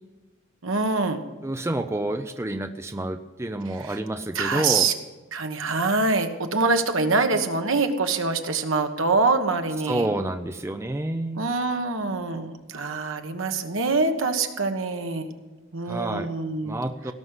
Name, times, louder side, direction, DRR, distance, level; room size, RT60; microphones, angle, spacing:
voice 1, 0.6-1.2 3.8-4.0 4.3-4.9 5.3-10.1 11.3-15.3 15.7-16.7, right 3 dB, 70° right, 6 dB, 1.4 m, -24 dB
voice 2, 1.4-4.9 9.8-11.4 15.9-16.3 16.6-17.1, right 1 dB, 15° right, 7 dB, 0.5 m, -29 dB
17.5 x 6.3 x 9.6 m, 1.2 s
head